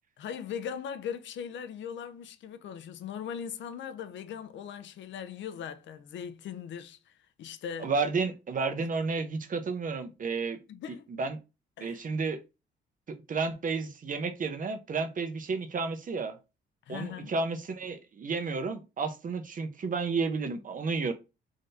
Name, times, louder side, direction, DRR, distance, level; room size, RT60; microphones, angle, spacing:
voice 1, 0.2-7.9 8.8-8.9 10.7-11.0 11.8-12.0 16.9-17.3, left 8 dB, 70° left, 0.6 m, -39 dB
voice 2, 7.8-10.6 11.1-11.4 11.8-12.4 13.1-16.4 16.9-21.1, right 4 dB, 40° right, 0.9 m, -31 dB
3.7 x 2.7 x 3.4 m
cardioid pair, 90°, 20 cm